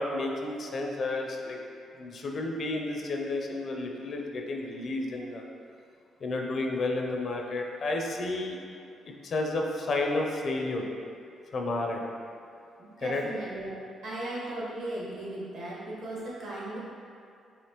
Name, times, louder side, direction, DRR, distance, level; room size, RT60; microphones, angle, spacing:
voice 1, 0.0-1.6 2.0-5.4 6.2-8.6 9.1-10.9 11.5-12.0 13.0-13.3, left 2 dB, 50° left, 1 dB, 0.5 m, -31 dB
voice 2, 12.8-13.8 14.0-16.8, right 1 dB, 70° right, -7 dB, 1.4 m, -37 dB
4.9 x 3.0 x 2.9 m, 2.4 s
cardioid pair, 90°, 0 cm